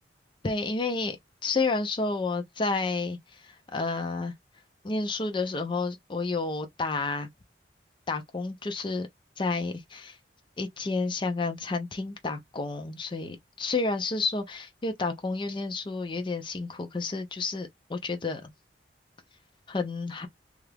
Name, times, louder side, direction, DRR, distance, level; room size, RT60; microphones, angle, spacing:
voice 1, 0.4-1.2 1.4-4.3 4.8-7.3 8.1-9.1 9.4-10.2 10.6-18.5 19.7-20.3, left 3 dB, 25° left, 0.5 m, -30 dB
2.8 x 2.4 x 3.3 m
head